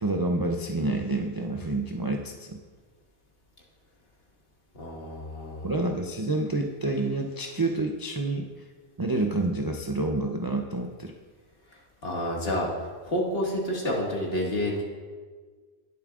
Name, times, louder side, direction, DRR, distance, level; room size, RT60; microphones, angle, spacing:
voice 1, 0.0-2.6 5.6-8.5 9.0-11.1, right 2 dB, 35° right, 2 dB, 0.4 m, -28 dB
voice 2, 4.8-5.7 12.0-12.7 13.0-14.8, equal, 60° left, -3 dB, 2.1 m, -29 dB
19.0 x 7.1 x 2.4 m, 1.5 s
omnidirectional pair, 1.1 m